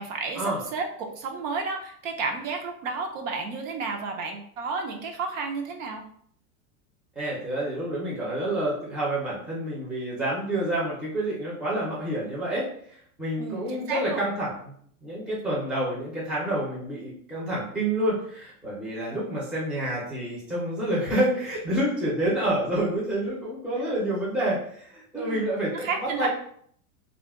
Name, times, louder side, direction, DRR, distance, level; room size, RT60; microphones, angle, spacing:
voice 1, 0.0-6.0 13.4-14.3 25.1-26.3, right 4 dB, 60° right, 3 dB, 0.7 m, -32 dB
voice 2, 7.2-14.7 15.0-26.3, right 1 dB, ahead, -7 dB, 0.5 m, -28 dB
2.4 x 2.1 x 3.5 m, 0.62 s
supercardioid pair, 150°, 45 cm